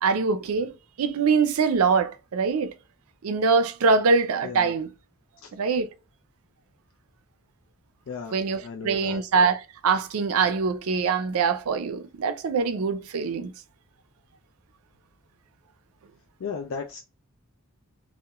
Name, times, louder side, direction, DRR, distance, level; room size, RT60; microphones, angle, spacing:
voice 1, 0.0-2.7 3.2-4.9 5.5-5.9 8.3-13.5, right 5 dB, 80° right, 0.4 m, -23 dB
voice 2, 4.4-4.7 5.4-5.5 8.1-9.2 16.4-17.0, left 5 dB, 60° left, 0.4 m, -35 dB
2.8 x 2.1 x 2.3 m
head